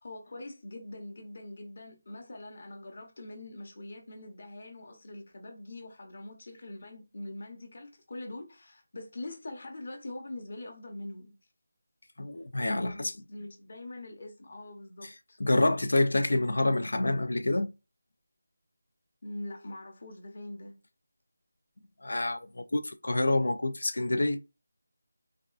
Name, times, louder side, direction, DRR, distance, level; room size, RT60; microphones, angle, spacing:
voice 1, 0.0-11.3 12.6-15.4 19.2-20.8, left 1 dB, 45° left, 0.8 m, -43 dB
voice 2, 12.2-13.1 15.0-15.1 15.4-17.7 22.0-24.4, left 2 dB, 70° left, 0.4 m, -27 dB
3.4 x 2.3 x 2.4 m
figure-of-eight pair, 175°, 0 cm